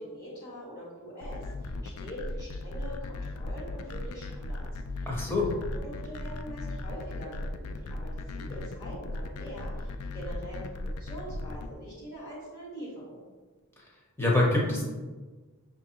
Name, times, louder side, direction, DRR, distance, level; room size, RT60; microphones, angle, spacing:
voice 1, 0.0-4.6 4.9-5.1 5.5-13.2, equal, 45° left, -9 dB, 1.5 m, -43 dB
sound 1, 1.2-11.7, left 2 dB, 75° left, 0.3 m, -37 dB
voice 2, 5.1-5.5 14.2-14.8, left 2 dB, 10° left, -3 dB, 0.8 m, -25 dB
6.2 x 2.7 x 2.8 m, 1.3 s
head